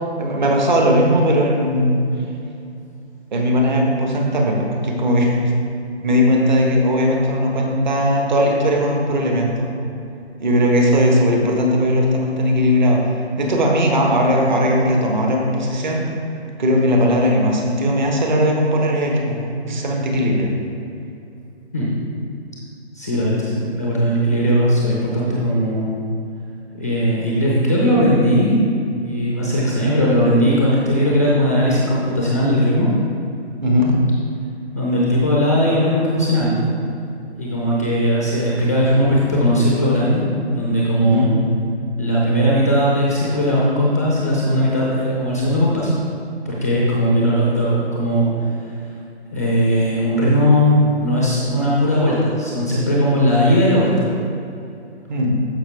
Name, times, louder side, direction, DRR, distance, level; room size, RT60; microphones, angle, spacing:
voice 1, 0.2-2.0 3.3-5.3 6.0-9.7 10.4-13.0 13.4-16.0 16.6-20.5 23.5-23.6 33.6-34.0 41.0-41.3 55.1-55.3, equal, 45° right, 0 dB, 1.4 m, -18 dB
voice 2, 22.9-26.0 26.7-28.6 29.0-32.9 34.7-36.7 37.4-41.4 42.0-45.9 46.4-48.7 49.3-54.1, equal, 15° left, -5 dB, 0.5 m, -18 dB
13.5 x 5.3 x 3.4 m, 2.6 s
hypercardioid pair, 165°, 33 cm